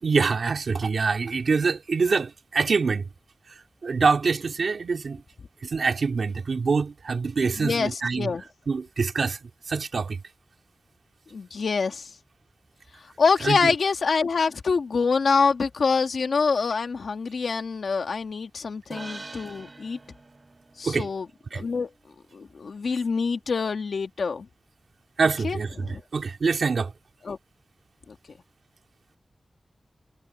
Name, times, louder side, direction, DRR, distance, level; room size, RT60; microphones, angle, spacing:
voice 1, 0.0-3.1 3.5-5.2 5.6-8.3 8.7-10.2 13.4-13.7 20.8-21.1 21.5-21.6 25.2-26.9, right 4 dB, 80° right, 2.9 m, -25 dB
voice 2, 7.6-8.4 11.3-12.1 13.2-20.0 20.8-21.3 21.5-21.9 22.3-24.5 25.4-26.0 27.2-27.4 28.1-28.2, left 5 dB, 85° left, 2.2 m, -25 dB
sound 1, 18.9-22.4, right 2 dB, 40° right, 5.2 m, -45 dB
wide cardioid pair, 70°, 0 cm